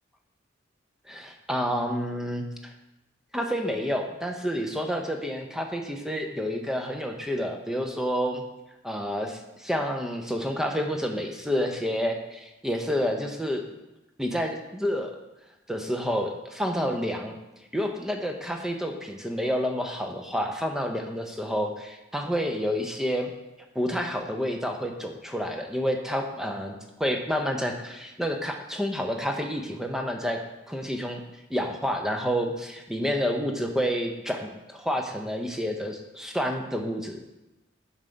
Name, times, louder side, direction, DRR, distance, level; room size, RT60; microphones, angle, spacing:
voice 1, 1.1-2.7 3.3-8.4 8.8-13.6 14.2-15.1 15.7-17.3 17.7-23.3 23.7-30.4 30.7-31.2 31.5-37.2, equal, ahead, 3 dB, 0.5 m, -29 dB
7.3 x 3.3 x 5.1 m, 1.0 s
head